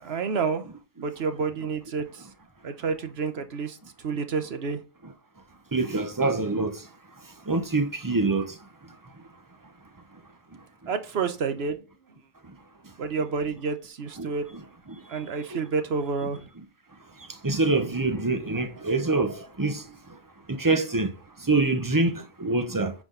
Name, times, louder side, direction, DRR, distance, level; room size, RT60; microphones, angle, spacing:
voice 1, 0.0-0.6 1.0-2.2 2.6-3.8 4.0-4.8 10.9-11.8 13.0-14.5 15.1-16.4, right 5 dB, 70° right, 1.2 m, -29 dB
voice 2, 5.7-6.8 7.5-8.5 14.2-14.6 14.9-15.0 15.4-15.6 17.4-19.8 20.5-21.1 21.5-22.9, right 3 dB, 20° right, 0.8 m, -25 dB
9.5 x 5.1 x 3.9 m
omnidirectional pair, 1.1 m